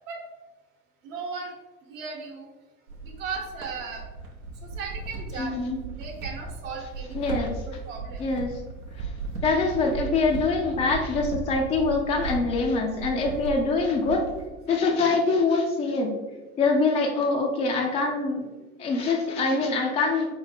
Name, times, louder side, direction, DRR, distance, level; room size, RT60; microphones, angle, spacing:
voice 1, 1.0-1.5 1.9-2.5 3.0-4.0 4.6-5.5 6.0-8.3, right 5 dB, 65° right, 1 dB, 1.0 m, -36 dB
sound 1, 2.9-14.5, right 3 dB, 90° right, 0.7 m, -36 dB
voice 2, 5.4-5.8 7.1-7.5 8.2-8.6 9.0-9.1 9.4-14.3 14.7-16.1 16.6-18.5 18.8-20.4, left 3 dB, 20° left, 1 dB, 0.3 m, -24 dB
4.9 x 2.1 x 3.4 m, 1.2 s
figure-of-eight pair, 75°, 43 cm